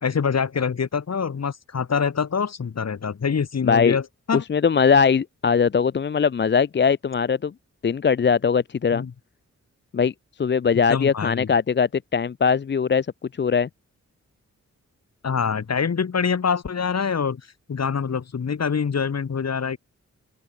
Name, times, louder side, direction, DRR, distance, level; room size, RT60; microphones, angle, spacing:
voice 1, 0.0-4.4 8.9-9.1 10.9-11.5 15.2-17.4 17.7-19.8, left 6 dB, 60° left, 2.2 m, -25 dB
voice 2, 3.6-4.0 4.3-7.5 7.8-9.0 9.9-10.1 10.4-13.1 13.4-13.7, left 6 dB, 40° left, 0.5 m, -20 dB
open air
wide cardioid pair, 120°, 30 cm